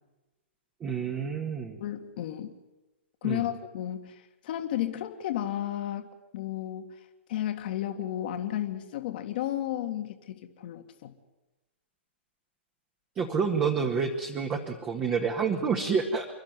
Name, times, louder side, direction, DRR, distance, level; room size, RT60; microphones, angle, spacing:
voice 1, 0.8-1.8 3.2-3.4 13.1-16.3, right 5 dB, 20° right, 3 dB, 1.8 m, -28 dB
voice 2, 1.8-2.5 3.2-6.9 7.3-11.1, left 12 dB, 50° left, 6 dB, 2.0 m, -33 dB
28.5 x 12.0 x 9.6 m, 1.0 s
hypercardioid pair, 120°, 6 cm